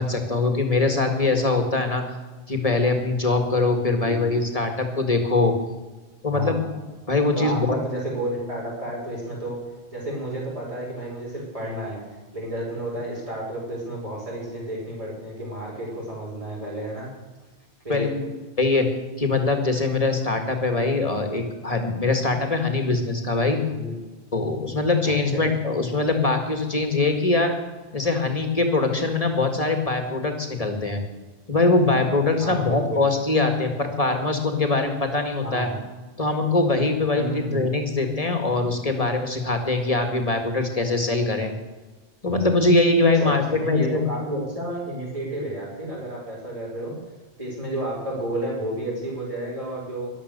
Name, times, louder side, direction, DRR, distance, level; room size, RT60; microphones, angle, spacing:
voice 1, 0.0-2.0 2.5-5.5 6.2-6.6 7.1-7.8 17.9-18.2 18.6-18.9 19.2-23.6 24.3-27.6 27.9-31.0 31.5-35.7 36.2-41.5 42.2-44.0, left 3 dB, 35° left, 5 dB, 2.1 m, -22 dB
voice 2, 3.9-4.3 6.2-6.7 7.3-9.6 9.9-12.0 12.3-17.1 17.8-18.2 23.7-24.0 25.1-25.4 32.4-33.1 35.4-35.8 37.1-37.7 43.1-47.0 47.4-50.1, right 1 dB, 30° right, -4 dB, 5.6 m, -31 dB
13.5 x 11.5 x 6.8 m, 1.2 s
omnidirectional pair, 1.1 m